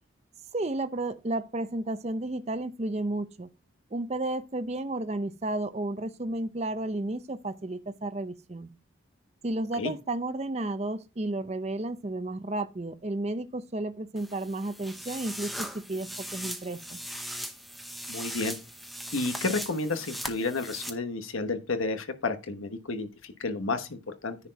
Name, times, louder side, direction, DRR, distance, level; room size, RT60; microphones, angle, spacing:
voice 1, 0.5-3.5 3.9-8.7 9.4-17.0, right 2 dB, 30° right, 0.6 m, -32 dB
sound 1, 14.2-20.9, equal, ahead, 0.7 m, -39 dB
voice 2, 18.1-18.6 19.1-24.4, left 3 dB, 90° left, 1.2 m, -31 dB
10.0 x 4.4 x 5.2 m
head